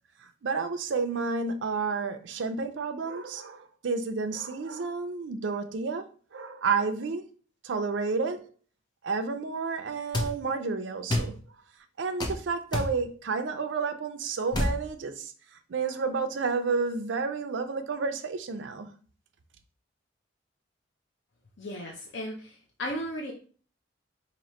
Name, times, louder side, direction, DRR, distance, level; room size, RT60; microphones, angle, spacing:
voice 1, 0.4-6.0 6.3-7.2 7.6-8.5 9.0-11.4 12.0-15.3 15.7-18.9, right 4 dB, 75° right, 0.5 m, -30 dB
sound 1, 10.1-10.3 11.1-11.3 12.2-12.4 12.7-12.9 14.5-14.8, left 1 dB, 25° left, 0.7 m, -27 dB
voice 2, 21.6-23.3, equal, 75° left, 0.6 m, -35 dB
3.0 x 2.8 x 4.3 m
head